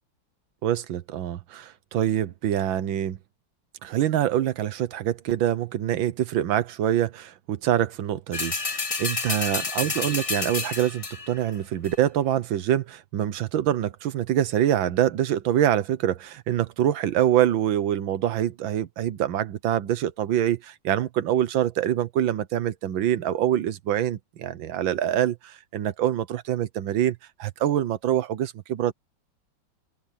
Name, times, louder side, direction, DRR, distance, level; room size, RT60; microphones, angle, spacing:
voice 1, 0.6-3.2 3.8-28.9, right 11 dB, 80° right, 1.8 m, -25 dB
sound 1, 8.3-11.4 11.8-11.9, left 4 dB, 35° left, 0.5 m, -29 dB
open air
omnidirectional pair, 2.1 m